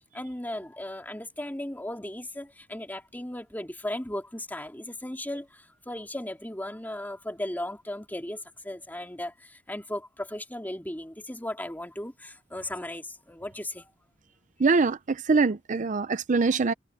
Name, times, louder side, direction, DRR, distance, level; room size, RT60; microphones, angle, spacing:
voice 1, 0.1-13.9 16.5-16.6, left 1 dB, 10° left, 2.6 m, -36 dB
voice 2, 14.6-16.7, right 4 dB, 45° right, 0.5 m, -23 dB
head